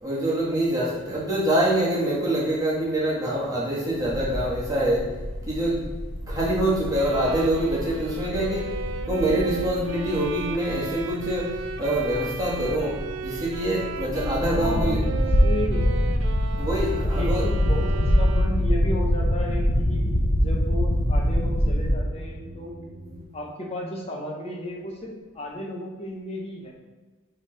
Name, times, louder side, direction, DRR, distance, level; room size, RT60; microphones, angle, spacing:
voice 1, 0.0-5.1 5.5-5.9 6.3-8.8 9.1-15.0 16.6-17.4, right 1 dB, 15° right, -6 dB, 1.5 m, -25 dB
sound 1, 4.0-21.9, equal, 80° left, 0.9 m, -25 dB
Bowed string instrument, 6.9-18.8, right 5 dB, 70° right, 0.4 m, -35 dB
voice 2, 14.5-15.0 15.4-15.8 17.1-22.7 23.3-26.7, left 1 dB, 30° left, -1 dB, 0.8 m, -34 dB
sound 2, 16.9-23.2, equal, 85° right, 1.7 m, -43 dB
9.5 x 3.4 x 3.3 m, 1.3 s
head